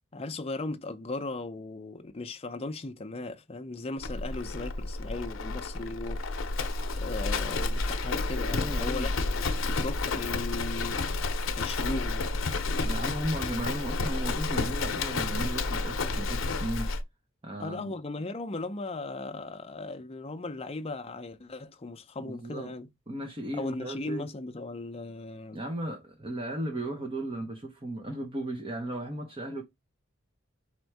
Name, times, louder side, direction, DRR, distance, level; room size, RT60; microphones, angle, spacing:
voice 1, 0.1-6.6 7.0-11.0 11.5-12.2 17.6-22.9 23.5-25.6, left 2 dB, 30° left, 0.5 m, -37 dB
Livestock farm animals working animals, 4.0-17.0, left 3 dB, 70° left, 0.7 m, -30 dB
voice 2, 8.5-9.1 12.8-16.9 17.4-17.9 22.2-22.7 23.1-24.3 25.5-29.6, right 1 dB, 25° right, 0.8 m, -35 dB
4.3 x 2.6 x 4.6 m
head